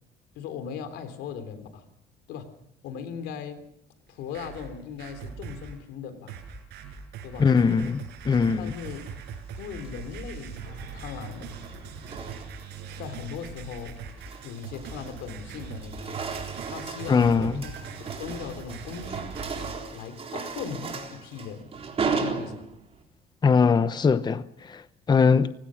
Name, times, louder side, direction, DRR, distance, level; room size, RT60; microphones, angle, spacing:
voice 1, 0.3-1.8 2.3-2.5 2.8-3.6 4.1-6.4 7.2-7.5 8.6-9.0 9.6-11.5 13.0-14.0 14.4-16.1 16.6-17.7 18.0-19.3 19.9-21.7 22.0-22.7, left 7 dB, 85° left, 3.4 m, -38 dB
sound 1, 4.1-5.8 6.3-19.8, right 6 dB, 80° right, 5.7 m, -41 dB
voice 2, 7.4-8.7 17.1-17.7 23.4-25.5, left 5 dB, 25° left, 0.8 m, -21 dB
sound 2, 9.6-10.1 11.2-12.8 13.2-13.5 14.0-15.4 15.7-23.0, right 5 dB, 35° right, 4.0 m, -35 dB
29.5 x 16.5 x 6.4 m
cardioid pair, 110°, 17 cm